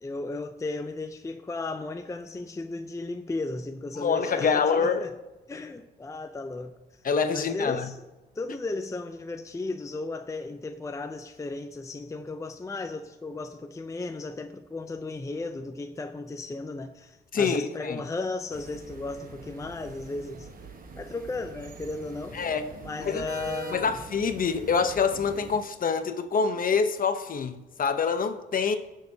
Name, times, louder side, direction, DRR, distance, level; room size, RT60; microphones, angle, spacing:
voice 1, 0.0-5.1 5.5-6.8 7.3-8.0 8.4-20.5 21.0-22.4 22.8-23.9, left 3 dB, 15° left, 0.6 m, -35 dB
voice 2, 4.0-5.0 7.0-7.8 17.3-18.0 22.3-22.6 23.0-23.2 23.7-28.8, left 5 dB, 45° left, 0.9 m, -26 dB
sound 1, 18.5-25.6, right 3 dB, 45° right, 1.3 m, -43 dB
19.0 x 6.5 x 2.8 m
cardioid pair, 90°, 20 cm